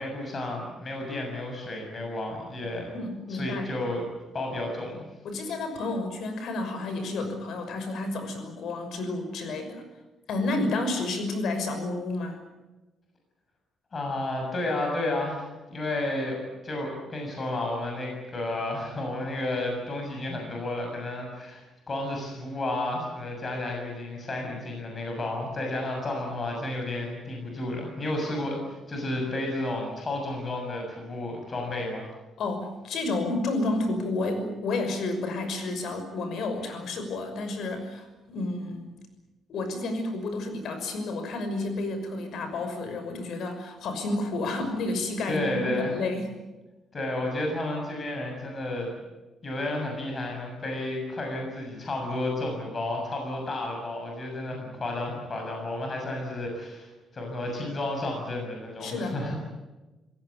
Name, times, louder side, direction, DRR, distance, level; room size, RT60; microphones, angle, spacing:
voice 1, 0.0-2.9 3.3-4.0 4.3-5.0 13.9-32.0 45.3-45.9 46.9-48.9 49.4-59.3, left 2 dB, 30° left, 1 dB, 6.9 m, -32 dB
voice 2, 2.9-3.7 5.2-9.8 10.3-12.4 32.4-38.8 39.5-46.3 58.8-59.2, left 2 dB, 65° left, 8 dB, 6.0 m, -30 dB
27.5 x 17.0 x 9.6 m, 1.1 s
cardioid pair, 155°, 0 cm